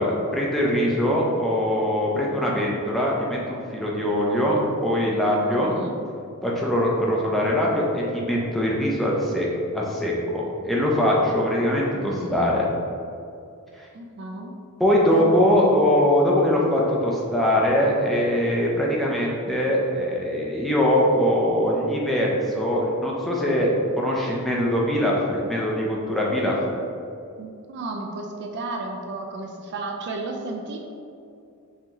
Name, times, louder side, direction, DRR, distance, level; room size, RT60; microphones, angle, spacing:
voice 1, 0.0-5.7 6.4-9.5 9.7-12.7 14.8-26.6, equal, ahead, -4 dB, 0.5 m, -22 dB
voice 2, 12.1-12.5 13.9-14.5 27.4-30.8, right 2 dB, 50° right, 2 dB, 0.4 m, -33 dB
5.5 x 2.8 x 3.0 m, 2.5 s
head